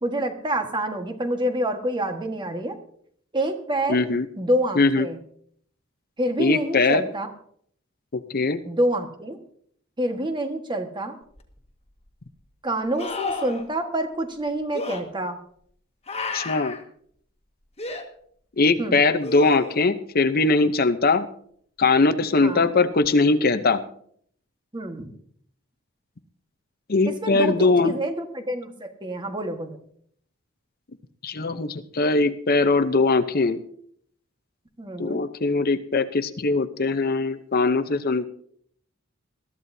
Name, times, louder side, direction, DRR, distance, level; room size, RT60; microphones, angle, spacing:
voice 1, 0.0-2.8 3.3-4.0 4.4-5.2 6.2-7.3 8.7-9.4 10.0-11.1 12.6-15.4 18.8-19.0 22.4-22.7 24.7-25.1 27.0-29.8 34.8-35.2, right 1 dB, 20° right, 5 dB, 1.5 m, -27 dB
voice 2, 3.9-4.3 4.8-5.1 6.4-7.0 8.3-8.6 16.3-16.8 18.6-21.3 21.8-23.8 26.9-27.9 31.2-33.6 35.0-38.3, left 3 dB, 45° left, 11 dB, 0.8 m, -21 dB
sound 1, 11.4-11.5 13.0-13.6 14.7-15.0 16.1-16.8 17.8-18.0 19.2-19.9 23.0-23.1, left 3 dB, 30° left, 1.7 m, -32 dB
21.0 x 14.0 x 2.8 m, 0.63 s
head